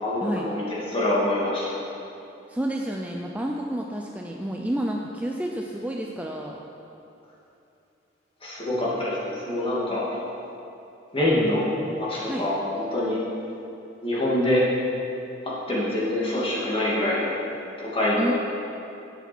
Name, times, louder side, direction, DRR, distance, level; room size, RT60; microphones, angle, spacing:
voice 1, 0.0-0.6 0.9-1.8 8.4-10.0 11.1-11.6 12.0-13.2 14.0-14.6 15.7-17.3 17.8-18.3, left 1 dB, 30° left, -7 dB, 2.5 m, -25 dB
voice 2, 2.5-6.6 12.3-12.5 18.2-18.3, right 1 dB, 10° right, 0 dB, 0.5 m, -30 dB
11.0 x 8.3 x 4.5 m, 2.8 s
head